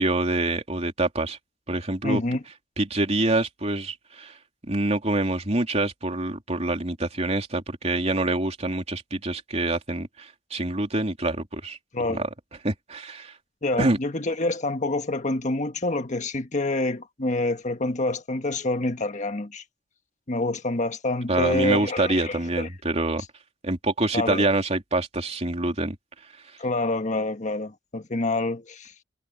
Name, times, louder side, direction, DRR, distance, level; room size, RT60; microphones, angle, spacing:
voice 1, 0.0-1.4 1.7-2.2 2.8-4.3 4.7-11.8 12.1-12.3 12.6-13.3 13.8-14.0 21.3-23.2 23.6-25.9, right 2 dB, 35° right, 3.3 m, -26 dB
voice 2, 2.0-2.4 11.9-12.2 13.6-19.6 20.3-22.7 24.1-24.5 26.6-28.9, left 2 dB, 40° left, 1.5 m, -27 dB
head